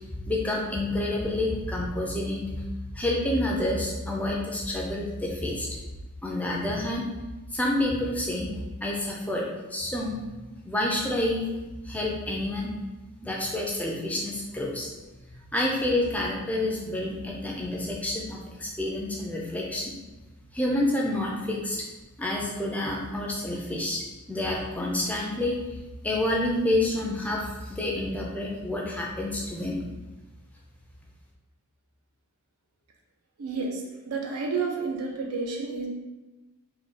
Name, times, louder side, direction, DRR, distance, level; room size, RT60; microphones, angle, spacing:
voice 1, 0.3-2.6 2.9-5.8 6.2-7.1 7.5-8.5 8.8-10.3 10.6-11.5 11.8-12.7 13.2-14.9 15.5-19.9 20.5-21.8 22.2-25.6 26.0-29.8, left 1 dB, 5° left, -2 dB, 0.3 m, -28 dB
voice 2, 33.4-35.9, right 4 dB, 90° right, 0 dB, 0.6 m, -30 dB
3.2 x 2.1 x 3.6 m, 1.1 s
head